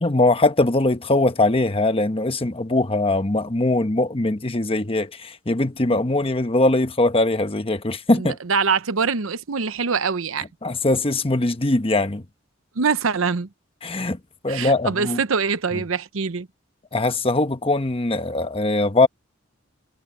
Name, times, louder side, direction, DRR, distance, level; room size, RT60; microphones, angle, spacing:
voice 1, 0.0-8.4 10.6-12.2 13.8-15.2 16.9-19.1, left 2 dB, 30° left, 1.1 m, -21 dB
voice 2, 8.1-10.4 12.8-13.5 14.5-16.5, right 5 dB, 80° right, 0.8 m, -24 dB
head